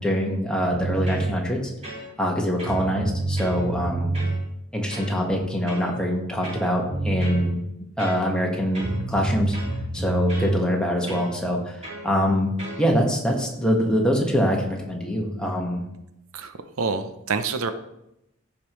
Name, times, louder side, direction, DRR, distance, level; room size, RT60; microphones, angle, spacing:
voice 1, 0.0-1.7 2.2-4.1 4.7-7.6 8.0-9.5 9.9-12.5 12.8-15.8, equal, 5° left, -1 dB, 1.5 m, -24 dB
sound 1, 0.7-1.3 1.8-2.3 2.6-4.4 4.9-5.1 5.7-5.9 6.4-7.5 8.0-8.5 8.7-10.5 11.1-11.3 11.8-12.1 12.6-12.8, right 2 dB, 30° right, 3.6 m, -28 dB
voice 2, 16.8-17.7, right 4 dB, 85° right, 10 dB, 0.7 m, -26 dB
15.0 x 5.3 x 3.1 m, 0.85 s
head